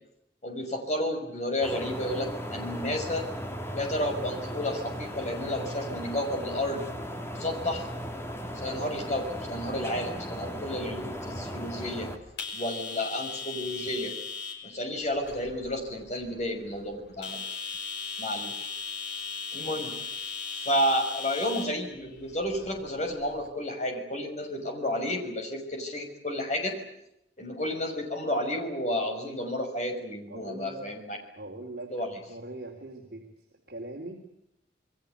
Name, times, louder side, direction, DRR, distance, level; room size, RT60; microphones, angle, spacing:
voice 1, 0.4-3.2 3.7-6.9 7.3-7.9 8.5-12.1 12.5-14.1 14.6-17.4 18.2-18.5 19.5-20.0 20.5-26.8 27.4-31.2 31.9-32.1, left 1 dB, 40° left, 4 dB, 6.3 m, -31 dB
sound 1, 1.6-12.2, equal, 15° left, 2.5 m, -37 dB
sound 2, 8.0-23.5, left 5 dB, 85° left, 5.7 m, -40 dB
voice 2, 30.3-30.9 31.4-33.2 33.7-34.2, right 2 dB, 60° right, -1 dB, 3.8 m, -41 dB
28.5 x 21.5 x 8.4 m, 0.82 s
head